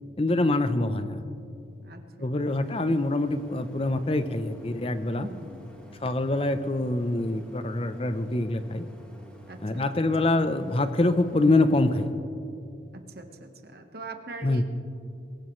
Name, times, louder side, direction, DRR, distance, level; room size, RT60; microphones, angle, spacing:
voice 1, 0.2-1.2 2.2-5.3 6.0-8.9 9.6-12.1 14.4-14.6, left 2 dB, 30° left, 10 dB, 0.6 m, -25 dB
voice 2, 1.8-2.5 5.2-5.8 9.5-9.8 10.2-10.3 13.1-14.6, right 2 dB, 55° right, 5 dB, 1.2 m, -42 dB
Idling, 2.5-12.1, equal, 5° left, 1.6 m, -49 dB
23.0 x 15.0 x 3.2 m, 2.5 s
head